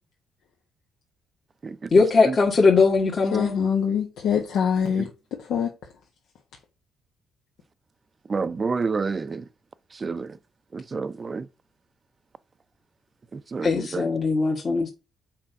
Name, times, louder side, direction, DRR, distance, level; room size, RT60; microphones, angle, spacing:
voice 1, 1.9-3.5 13.6-14.9, left 4 dB, 40° left, 1.5 m, -20 dB
voice 2, 3.3-5.1 5.4-5.7, left 7 dB, 80° left, 1.4 m, -24 dB
voice 3, 8.3-9.4 10.0-10.4 10.7-11.5 13.3-13.7, right 4 dB, 35° right, 0.5 m, -28 dB
7.4 x 4.5 x 5.1 m
cardioid pair, 90°, 0 cm